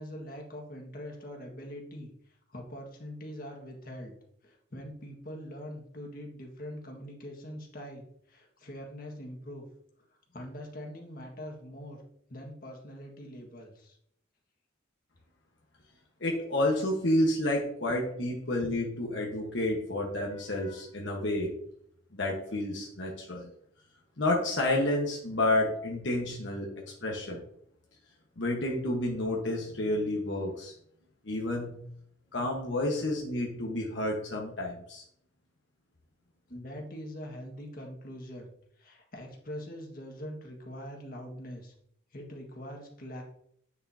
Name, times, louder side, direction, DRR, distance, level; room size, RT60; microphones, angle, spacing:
voice 1, 0.0-4.2 4.4-9.7 10.3-12.0 12.3-14.0 36.5-38.5 38.8-41.7 42.1-43.2, equal, 45° left, 1 dB, 1.7 m, -43 dB
voice 2, 16.2-21.5 22.1-23.5 24.2-27.4 28.4-30.7 31.2-31.9 32.3-35.0, left 1 dB, 70° left, -1 dB, 1.3 m, -30 dB
9.3 x 6.8 x 2.8 m, 0.68 s
head